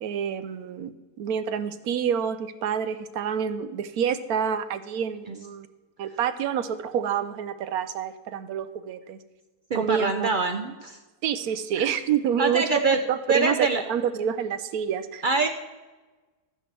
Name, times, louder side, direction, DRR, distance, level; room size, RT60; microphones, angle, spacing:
voice 1, 0.0-0.9 1.2-5.7 6.0-9.2 9.7-10.3 11.2-12.8 13.1-13.6 13.9-15.2, right 8 dB, 80° right, 12 dB, 1.2 m, -28 dB
voice 2, 9.7-11.0 11.8-11.9 12.4-13.0 13.3-13.8 15.2-15.5, right 4 dB, 60° right, 6 dB, 0.5 m, -24 dB
13.5 x 9.7 x 3.3 m, 1.2 s
omnidirectional pair, 1.6 m